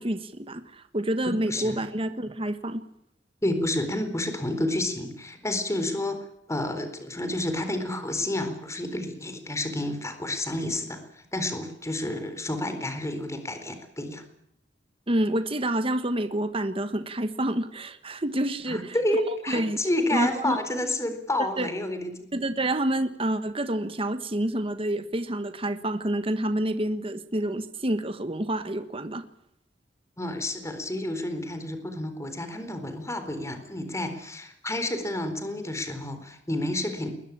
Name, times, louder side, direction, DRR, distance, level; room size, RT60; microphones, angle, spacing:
voice 1, 0.0-2.8 15.1-19.8 20.1-20.6 21.6-21.7 22.3-29.2, right 1 dB, 30° right, 10 dB, 1.4 m, -28 dB
voice 2, 1.5-1.8 3.4-14.2 18.7-22.3 30.2-37.1, left 1 dB, 15° left, 8 dB, 4.2 m, -30 dB
22.0 x 19.5 x 8.7 m, 0.78 s
head